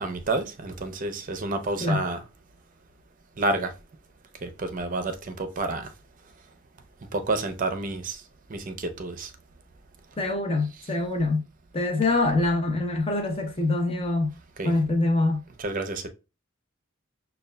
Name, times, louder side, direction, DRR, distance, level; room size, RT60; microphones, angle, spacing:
voice 1, 0.0-2.2 3.4-3.7 4.4-5.9 7.1-8.2 8.5-9.3 10.8-10.9 12.0-12.1 14.6-14.7 15.6-16.1, right 2 dB, 40° right, 0.5 m, -29 dB
voice 2, 10.2-11.4 11.7-14.3 14.6-15.4, left 2 dB, 30° left, 0.7 m, -24 dB
6.3 x 2.3 x 2.2 m
head